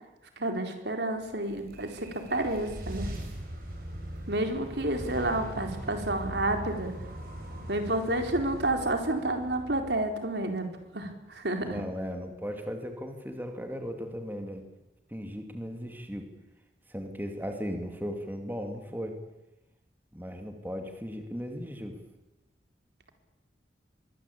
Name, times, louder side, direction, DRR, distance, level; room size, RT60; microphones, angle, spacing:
voice 1, 0.4-3.1 4.3-6.9 7.7-10.7 10.9-11.8, right 1 dB, 70° right, 5 dB, 4.1 m, -30 dB
sound 1, 1.3-10.6, right 1 dB, 55° right, 7.7 m, -41 dB
voice 2, 11.6-14.6 15.1-16.3 16.9-19.2 20.1-22.0, equal, 10° right, 4 dB, 2.6 m, -37 dB
23.5 x 22.5 x 8.6 m, 0.98 s
head